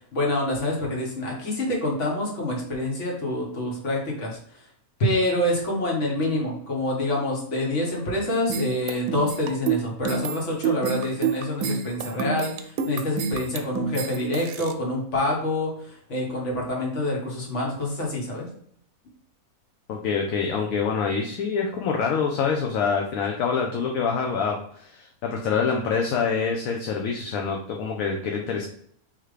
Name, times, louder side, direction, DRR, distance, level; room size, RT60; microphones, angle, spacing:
voice 1, 0.1-4.7 5.0-18.5, left 1 dB, 55° left, -2 dB, 1.6 m, -27 dB
sound 1, 8.5-14.7, right 6 dB, 75° right, 1.0 m, -28 dB
voice 2, 19.9-28.7, left 5 dB, 70° left, 1 dB, 1.0 m, -26 dB
3.9 x 2.9 x 4.8 m, 0.64 s
omnidirectional pair, 1.5 m